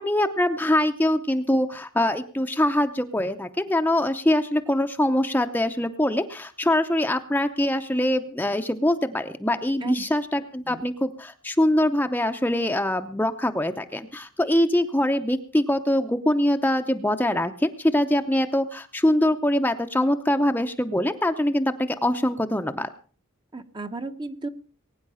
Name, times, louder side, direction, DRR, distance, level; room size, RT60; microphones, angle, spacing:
voice 1, 0.0-22.9, left 1 dB, 10° left, 6 dB, 0.7 m, -23 dB
voice 2, 23.5-24.5, right 3 dB, 20° right, 8 dB, 0.9 m, -34 dB
21.0 x 9.6 x 5.6 m, 0.41 s
head